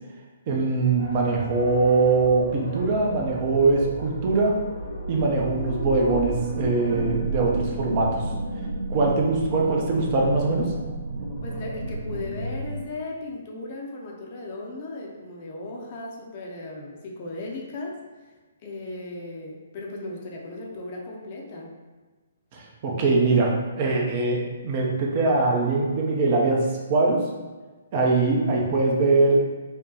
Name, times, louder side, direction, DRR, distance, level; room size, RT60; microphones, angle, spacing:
voice 1, 0.5-4.5 5.1-8.2 8.9-10.7 22.5-23.5 23.8-27.2 27.9-29.4, right 3 dB, 35° right, -1 dB, 0.6 m, -22 dB
sound 1, 1.0-12.8, right 2 dB, 55° right, 0.9 m, -32 dB
voice 2, 11.4-18.3 18.6-21.7, left 2 dB, 40° left, -1 dB, 0.6 m, -36 dB
4.8 x 2.2 x 2.8 m, 1.3 s
figure-of-eight pair, 125°, 0 cm